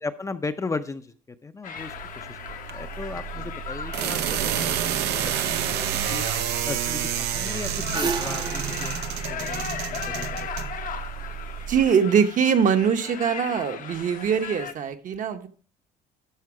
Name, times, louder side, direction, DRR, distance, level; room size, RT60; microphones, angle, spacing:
voice 1, 0.0-1.1 1.4-2.4 2.7-4.8 5.1-6.2 6.7-9.0 9.3-10.3 10.6-10.7, left 3 dB, 20° left, 9 dB, 0.5 m, -36 dB
sound 1, 1.6-14.7, left 8 dB, 50° left, 0.8 m, -37 dB
sound 2, 1.8-11.9, right 10 dB, 85° right, 0.7 m, -29 dB
sound 3, 7.9-10.6, right 5 dB, 25° right, 0.6 m, -33 dB
voice 2, 11.7-15.5, right 7 dB, 50° right, 7 dB, 0.9 m, -22 dB
12.5 x 4.2 x 4.8 m, 0.44 s
cardioid pair, 110°, 17 cm